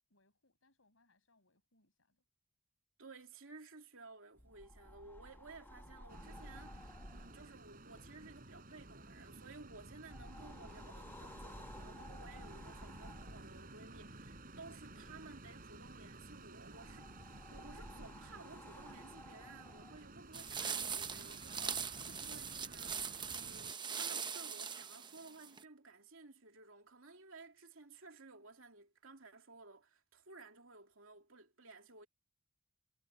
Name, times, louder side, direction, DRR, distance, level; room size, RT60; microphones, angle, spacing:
voice 1, 0.1-2.2, left 2 dB, 75° left, 6.4 m, -75 dB
voice 2, 3.0-32.1, right 3 dB, 75° right, 2.7 m, -56 dB
sound 1, 4.4-23.1, left 1 dB, 10° left, 1.9 m, -56 dB
sound 2, 6.1-23.7, right 2 dB, 45° right, 6.2 m, -54 dB
sound 3, 20.3-25.6, right 6 dB, 25° right, 0.8 m, -41 dB
head